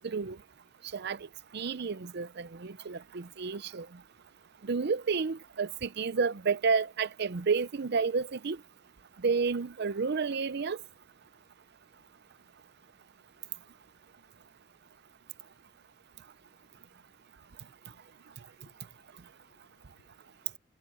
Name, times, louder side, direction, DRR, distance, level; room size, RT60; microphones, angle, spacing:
voice 1, 0.0-0.4 0.9-1.3 1.5-3.9 4.6-8.6 9.2-10.8, right 5 dB, 55° right, 0.6 m, -30 dB
voice 2, 18.5-20.6, left 3 dB, 50° left, 0.6 m, -69 dB
head